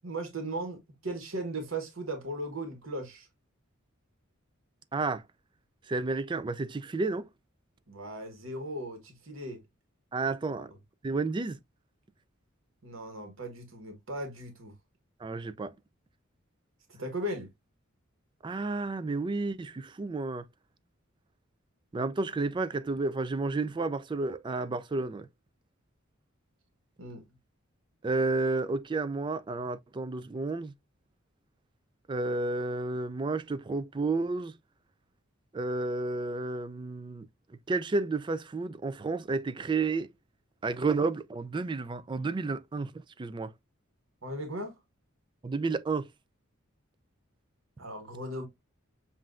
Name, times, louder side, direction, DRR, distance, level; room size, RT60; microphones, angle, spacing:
voice 1, 0.0-3.3 7.9-9.6 10.5-10.6 12.8-14.7 16.9-17.5 27.0-27.2 44.2-44.8 47.8-48.5, right 1 dB, 80° right, 1.3 m, -37 dB
voice 2, 4.9-5.2 5.9-7.3 10.1-10.7 11.0-11.6 15.2-15.7 18.4-20.5 21.9-25.3 28.0-30.7 32.1-34.5 35.5-37.3 37.7-40.1 40.6-43.5 45.4-46.1, right 3 dB, 25° right, 0.3 m, -31 dB
7.5 x 2.5 x 2.4 m
head